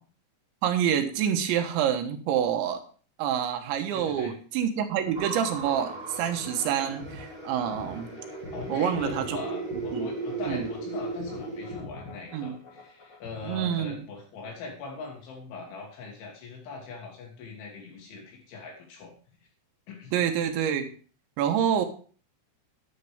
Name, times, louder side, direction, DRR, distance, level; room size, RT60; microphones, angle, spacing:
voice 1, 0.6-2.8 3.2-8.1 8.7-9.4 9.9-10.1 10.5-10.7 12.3-12.6 13.5-14.0 20.1-20.9 21.4-21.9, right 9 dB, 80° right, 6 dB, 3.4 m, -27 dB
voice 2, 3.9-4.4 8.5-19.1 19.9-20.1, left 4 dB, 80° left, 0 dB, 5.4 m, -41 dB
sound 1, 5.0-14.0, left 2 dB, 30° left, 2.4 m, -46 dB
sound 2, 5.1-11.7, right 3 dB, 50° right, 0.5 m, -36 dB
10.5 x 9.9 x 3.6 m, 0.40 s
omnidirectional pair, 5.3 m